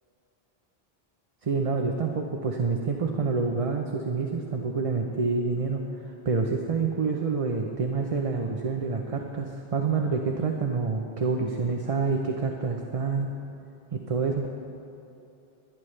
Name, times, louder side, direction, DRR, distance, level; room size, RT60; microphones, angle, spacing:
voice 1, 1.4-13.3 13.9-14.5, right 4 dB, 35° right, 2 dB, 0.8 m, -27 dB
23.5 x 10.5 x 3.3 m, 2.8 s
omnidirectional pair, 1.0 m